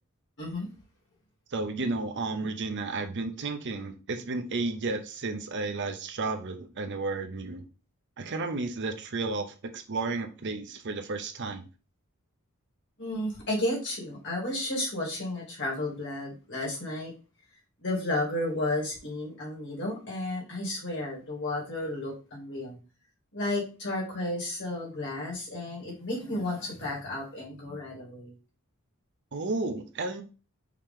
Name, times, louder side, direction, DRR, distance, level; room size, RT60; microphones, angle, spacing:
voice 1, 1.5-7.6 8.2-11.7 29.3-30.2, right 3 dB, 55° right, 7 dB, 0.6 m, -32 dB
voice 2, 13.0-17.1 17.8-22.8 23.3-28.3, left 1 dB, 55° left, -3 dB, 2.3 m, -32 dB
4.8 x 2.9 x 3.7 m, 0.33 s
head